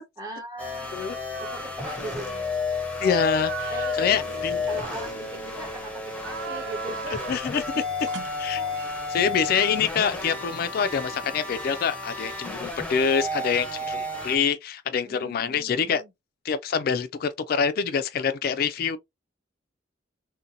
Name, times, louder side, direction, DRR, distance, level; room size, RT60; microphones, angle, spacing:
voice 1, 0.2-1.0 1.4-2.7 3.7-4.3 4.7-7.6 9.3-9.4 15.0-16.1, right 1 dB, 20° right, 1.3 m, -40 dB
sound 1, 0.6-14.4, left 3 dB, 5° left, 0.8 m, -32 dB
sound 2, 1.1-1.7 2.0-2.3 2.9-5.7 6.1-7.5 8.0-9.1 10.2-12.0, right 4 dB, 85° right, 0.9 m, -39 dB
voice 2, 3.0-4.6 7.3-8.1 8.4-8.6 9.1-16.0 16.4-19.0, left 6 dB, 55° left, 0.3 m, -26 dB
3.8 x 2.1 x 2.6 m
head